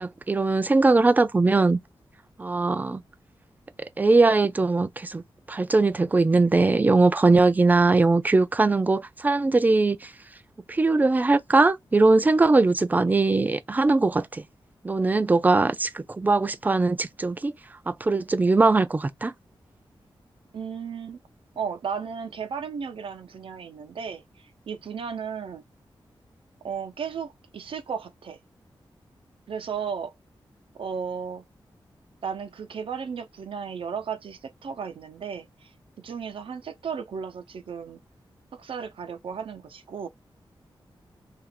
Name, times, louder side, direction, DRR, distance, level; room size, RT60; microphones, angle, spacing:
voice 1, 0.0-1.8 2.4-3.0 4.0-5.2 5.5-10.1 10.7-14.4 14.8-17.5 17.9-19.3, right 3 dB, 20° right, 0.3 m, -21 dB
voice 2, 20.5-21.2 21.6-25.6 26.6-28.4 29.5-30.1 30.7-31.4 32.2-38.0 38.5-40.1, right 6 dB, 80° right, 0.6 m, -34 dB
2.9 x 2.5 x 4.2 m
wide cardioid pair, 155°, 9 cm